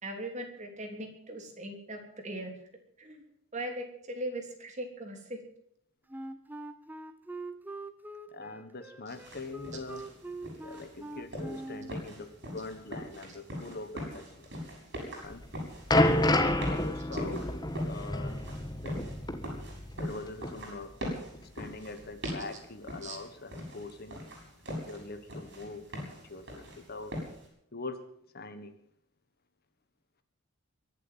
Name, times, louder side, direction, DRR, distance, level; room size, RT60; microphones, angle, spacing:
voice 1, 0.0-2.5 3.0-3.2 3.5-5.4 9.1-9.2 23.0-23.2, right 1 dB, 35° right, 3 dB, 3.2 m, -39 dB
Wind instrument woodwind instrument, 6.1-12.0, right 2 dB, 10° right, 0.9 m, -43 dB
voice 2, 8.3-10.1 10.6-14.5 15.0-15.4 16.3-18.4 18.8-19.1 19.9-21.0 21.5-24.3 24.9-27.3 27.7-28.1 28.3-28.8, left 3 dB, 45° left, 9 dB, 1.4 m, -43 dB
sound 1, 9.1-27.5, equal, 55° right, 6.9 m, -42 dB
sound 2, 15.3-20.2 20.4-20.6 21.3-21.4, left 1 dB, 20° left, 1.5 m, -29 dB
23.0 x 7.8 x 7.4 m, 0.71 s
head